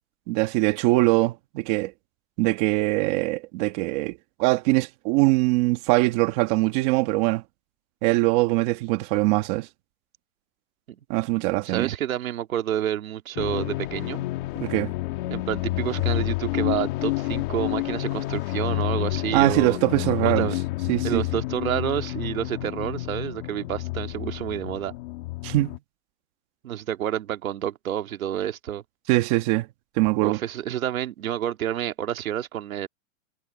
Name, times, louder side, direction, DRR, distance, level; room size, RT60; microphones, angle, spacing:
voice 1, 0.3-1.9 2.4-7.4 8.0-9.7 11.1-11.9 14.6-14.9 19.3-20.5 20.9-21.2 25.4-25.8 29.1-29.7 30.0-30.4, right 20 dB, 30° right, 1.3 m, -22 dB
voice 2, 11.6-14.3 15.3-19.8 20.2-20.6 21.0-24.9 26.6-28.8 30.2-32.9, right 11 dB, 80° right, 2.2 m, -29 dB
sound 1, 13.4-25.8, left 18 dB, 40° left, 1.8 m, -29 dB
supercardioid pair, 165°, 41 cm